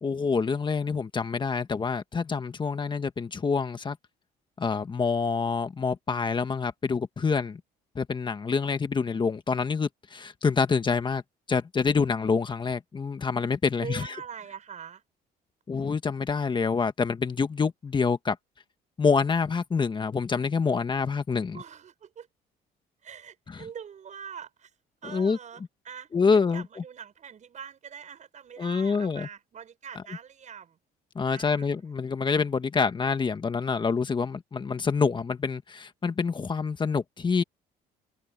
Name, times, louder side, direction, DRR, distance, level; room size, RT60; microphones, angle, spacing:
voice 1, 0.0-4.0 4.6-7.6 7.9-11.2 11.5-14.1 15.7-18.4 19.0-21.6 23.5-23.6 25.0-25.4 26.1-26.6 28.6-29.3 31.1-37.4, left 5 dB, 30° left, 1.6 m, -26 dB
voice 2, 13.8-15.0 21.5-22.3 23.0-24.7 25.0-30.8 31.3-31.7, right 8 dB, 45° right, 6.8 m, -43 dB
cardioid pair, 110°, 17 cm